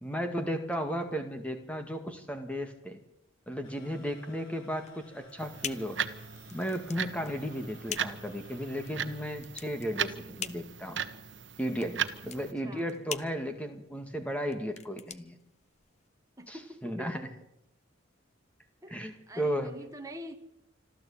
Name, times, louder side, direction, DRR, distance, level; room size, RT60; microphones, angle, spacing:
voice 1, 0.0-3.0 3.5-6.0 6.5-11.0 11.6-15.4 16.5-16.6 16.8-17.2 18.9-19.7, equal, 5° left, 6 dB, 2.0 m, -34 dB
sound 1, 3.6-9.3, left 1 dB, 75° left, 4.8 m, -57 dB
sound 2, 4.8-16.1, left 8 dB, 35° left, 0.8 m, -44 dB
sound 3, 5.4-12.5, right 7 dB, 65° right, 1.3 m, -38 dB
voice 2, 12.4-12.9 16.4-17.2 18.8-20.3, equal, 15° right, 5 dB, 1.8 m, -46 dB
26.0 x 14.0 x 8.7 m, 0.86 s
head